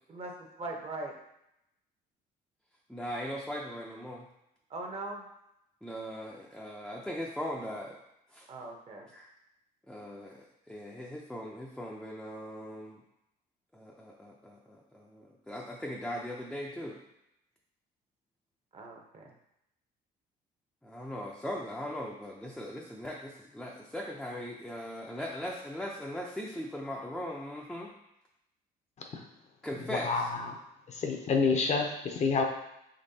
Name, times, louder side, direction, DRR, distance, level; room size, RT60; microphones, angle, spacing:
voice 1, 0.1-1.1 4.7-5.3 8.5-9.1 18.7-19.3, right 2 dB, 35° right, 1 dB, 0.8 m, -40 dB
voice 2, 2.9-4.3 5.8-8.0 8.3-8.4 9.1-9.3 9.9-10.4 10.7-13.0 13.7-17.0 20.8-27.9 29.6-30.3, equal, ahead, -3 dB, 0.5 m, -39 dB
voice 3, 30.0-30.6 31.0-32.4, left 4 dB, 40° left, 4 dB, 0.6 m, -28 dB
5.3 x 3.1 x 2.7 m, 0.83 s
cardioid pair, 110°, 17 cm